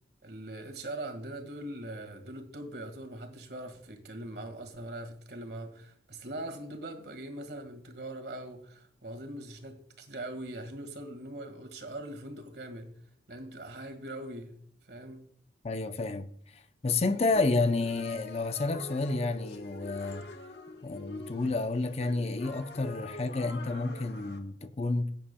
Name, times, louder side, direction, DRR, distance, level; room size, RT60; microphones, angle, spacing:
voice 1, 0.2-12.9 13.3-14.6 14.9-15.3, right 1 dB, 65° right, 1.8 m, -41 dB
voice 2, 15.6-20.3 20.8-25.2, left 3 dB, 35° left, 0.6 m, -30 dB
sound 1, 17.3-24.4, left 2 dB, 65° left, 1.3 m, -46 dB
16.5 x 8.6 x 2.3 m
head